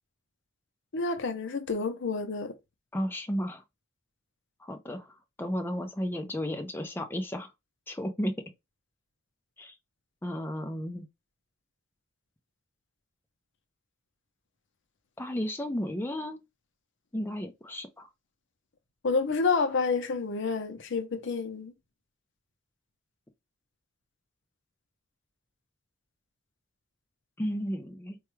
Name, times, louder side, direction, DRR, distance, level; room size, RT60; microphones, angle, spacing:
voice 1, 0.9-2.6 19.0-21.7, left 4 dB, 65° left, 0.6 m, -29 dB
voice 2, 2.9-3.6 4.6-7.5 7.9-8.3 9.6-9.7 10.2-11.1 15.2-16.4 17.1-18.1 27.4-28.2, equal, 10° left, 0.4 m, -33 dB
4.4 x 2.3 x 3.1 m
head